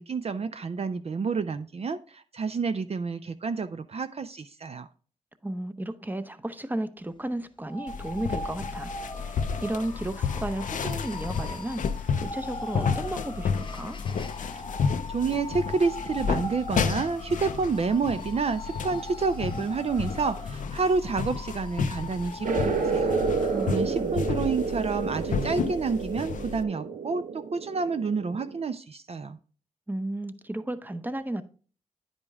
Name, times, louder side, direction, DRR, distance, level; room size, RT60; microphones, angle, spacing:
voice 1, 0.0-4.9 15.1-23.1 23.6-29.4, right 4 dB, 50° right, 0.4 m, -29 dB
voice 2, 5.4-14.0 23.5-24.1 29.9-31.4, right 1 dB, 15° right, 0.7 m, -34 dB
sound 1, 7.6-23.8, left 2 dB, 35° left, 0.9 m, -40 dB
sound 2, 7.9-26.6, left 6 dB, 75° left, 0.5 m, -32 dB
sound 3, 22.4-28.6, right 5 dB, 85° right, 0.7 m, -30 dB
9.6 x 5.1 x 3.5 m
cardioid pair, 60°, 13 cm